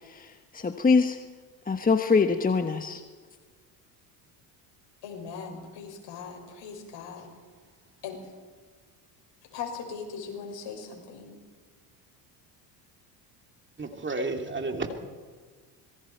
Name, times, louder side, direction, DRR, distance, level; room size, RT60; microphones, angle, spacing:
voice 1, 0.1-1.2 1.7-3.0, left 4 dB, 20° left, 7 dB, 1.1 m, -24 dB
voice 2, 5.0-7.3 8.0-8.2 9.5-11.4, left 6 dB, 65° left, 2 dB, 6.3 m, -39 dB
voice 3, 13.8-14.9, right 3 dB, 25° right, 4 dB, 2.7 m, -31 dB
26.0 x 22.0 x 4.5 m, 1.5 s
supercardioid pair, 90°, 46 cm